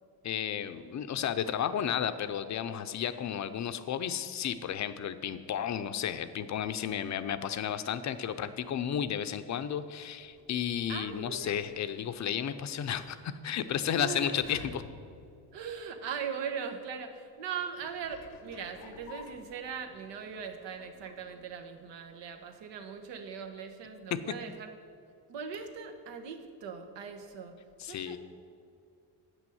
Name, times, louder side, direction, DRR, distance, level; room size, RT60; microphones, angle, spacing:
voice 1, 0.2-14.8 27.8-28.2, left 9 dB, 40° left, 11 dB, 0.5 m, -33 dB
sound 1, 10.0-16.1 16.7-16.8 17.7-22.0 22.2-22.3, left 5 dB, 90° left, 1.0 m, -53 dB
voice 2, 10.9-11.6 14.0-14.4 15.5-24.7 25.3-28.2, right 6 dB, 85° right, 5 dB, 1.1 m, -40 dB
8.0 x 6.2 x 7.8 m, 2.4 s
cardioid pair, 125°, 42 cm